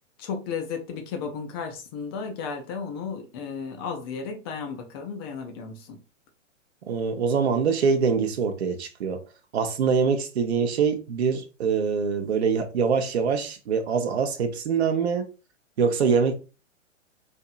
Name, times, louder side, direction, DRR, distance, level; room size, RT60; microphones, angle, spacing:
voice 1, 0.2-6.0, left 5 dB, 20° left, 0.5 m, -34 dB
voice 2, 6.9-9.2 9.5-15.3 15.8-16.3, right 6 dB, 55° right, 0.7 m, -24 dB
4.3 x 2.7 x 2.3 m
figure-of-eight pair, 110°, 38 cm